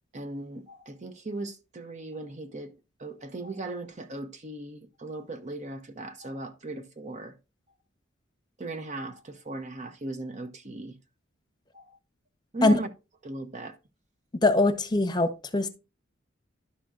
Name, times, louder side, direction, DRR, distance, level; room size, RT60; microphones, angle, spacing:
voice 1, 0.1-2.7 3.0-7.3 8.6-11.0 11.7-12.0 12.5-12.9 13.2-13.8, right 2 dB, 40° right, 0.7 m, -37 dB
voice 2, 14.4-15.7, left 2 dB, 20° left, 0.8 m, -22 dB
11.0 x 5.8 x 2.4 m
head